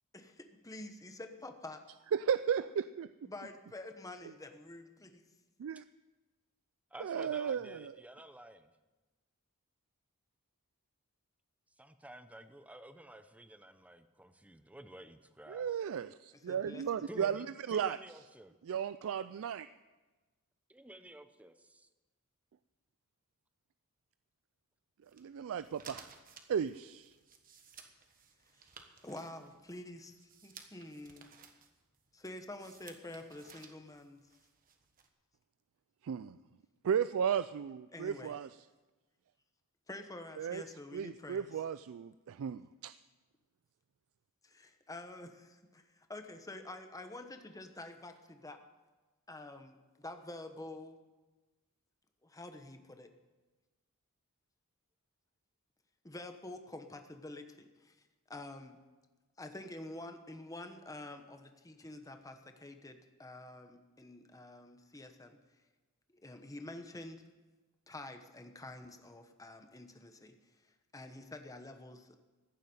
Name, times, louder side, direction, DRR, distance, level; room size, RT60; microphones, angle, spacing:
voice 1, 0.6-1.8 3.2-5.2 16.3-16.9 29.0-31.4 32.1-34.2 37.9-38.4 39.9-41.5 44.4-48.6 49.3-51.0 52.2-53.1 56.0-58.0 58.3-58.8 59.4-65.4 66.1-67.2 67.9-72.2, left 2 dB, 15° left, 6 dB, 1.1 m, -48 dB
voice 2, 2.1-3.3 5.6-5.8 7.0-7.9 15.5-18.0 18.7-19.7 25.2-26.1 26.5-27.1 36.0-36.4 36.8-38.5 40.4-40.6 40.9-42.9, right 8 dB, 65° right, 14 dB, 0.3 m, -35 dB
voice 3, 6.9-8.7 11.8-15.8 17.1-18.5 20.7-21.9, right 1 dB, 5° right, 9 dB, 0.7 m, -52 dB
sound 1, 25.0-35.1, right 6 dB, 40° right, 1.3 m, -58 dB
15.0 x 7.5 x 9.2 m, 1.2 s
head